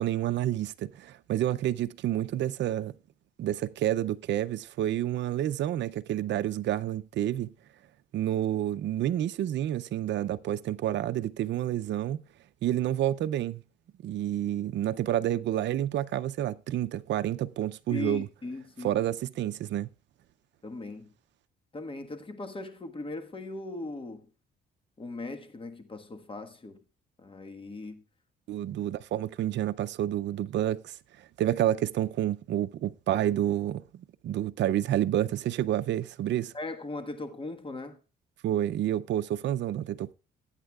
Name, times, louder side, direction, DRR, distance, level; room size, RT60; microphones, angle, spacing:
voice 1, 0.0-2.9 3.4-7.5 8.1-12.2 12.6-13.6 14.0-18.3 18.8-19.9 28.5-30.9 31.4-33.8 34.2-36.5 38.4-40.1, right 12 dB, 65° right, 0.5 m, -29 dB
voice 2, 17.9-19.1 20.6-21.1 21.7-24.3 25.0-26.8 27.2-28.0 36.5-38.0, left 2 dB, 25° left, 1.4 m, -39 dB
19.5 x 8.8 x 2.3 m
cardioid pair, 90°, 20 cm